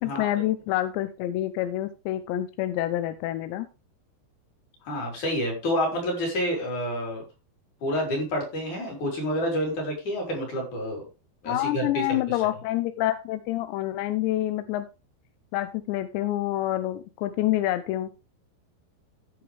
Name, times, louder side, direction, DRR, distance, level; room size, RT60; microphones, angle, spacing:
voice 1, 0.0-3.7 11.5-14.9 15.5-18.1, left 14 dB, 85° left, 10 dB, 3.0 m, -27 dB
voice 2, 4.8-7.2 7.8-11.0 11.4-12.4, equal, 45° left, 0 dB, 5.5 m, -28 dB
16.0 x 6.0 x 3.4 m, 0.30 s
omnidirectional pair, 5.0 m